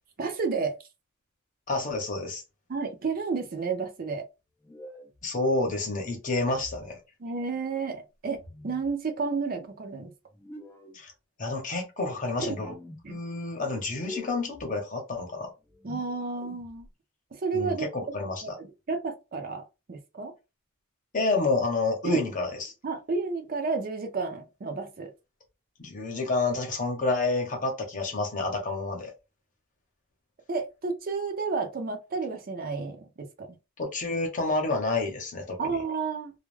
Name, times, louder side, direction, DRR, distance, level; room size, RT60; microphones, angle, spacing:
voice 1, 0.2-0.8 2.7-4.3 7.2-10.1 12.4-12.6 13.0-13.2 15.8-16.9 17.3-17.9 18.4-20.3 22.0-22.2 22.8-25.1 30.5-33.5 35.6-36.3, right 4 dB, 45° right, 0.5 m, -31 dB
voice 2, 1.7-2.4 5.2-7.0 10.9-11.1 11.4-12.7 13.1-15.5 17.5-18.6 21.1-22.7 25.8-29.1 33.8-35.8, left 3 dB, 40° left, 0.8 m, -29 dB
sound 1, 4.6-5.2 6.3-6.9 8.3-8.9 10.3-11.0 12.3-13.1 13.8-14.7 15.6-16.9, left 1 dB, 10° left, 0.4 m, -46 dB
2.3 x 2.1 x 3.1 m
head